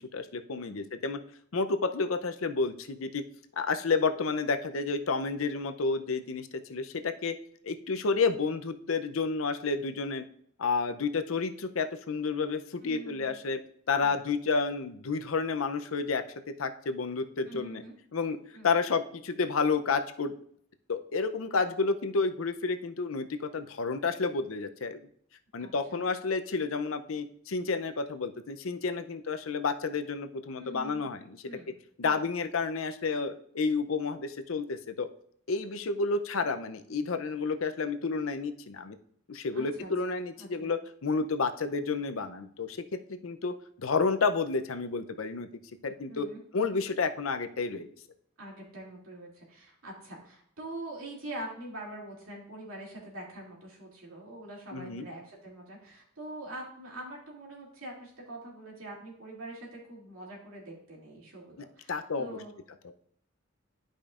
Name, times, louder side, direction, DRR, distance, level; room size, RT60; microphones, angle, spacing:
voice 1, 0.1-1.2 1.5-3.2 3.6-7.4 7.6-10.2 10.6-13.6 13.9-16.2 16.6-17.8 18.1-18.4 18.6-20.3 20.9-25.0 25.5-31.4 32.0-35.1 35.5-39.0 39.3-45.5 45.8-46.3 46.5-47.9 54.7-55.1 61.9-62.4, left 4 dB, 85° left, 8 dB, 0.6 m, -30 dB
voice 2, 12.8-13.4 14.0-14.2 17.5-18.0 18.5-18.7 25.6-26.0 30.5-31.1 31.4-31.7 32.0-32.2 39.5-40.7 46.1-46.4 48.4-62.5, right 1 dB, 85° right, -2 dB, 2.7 m, -44 dB
11.5 x 5.1 x 2.5 m, 0.66 s
head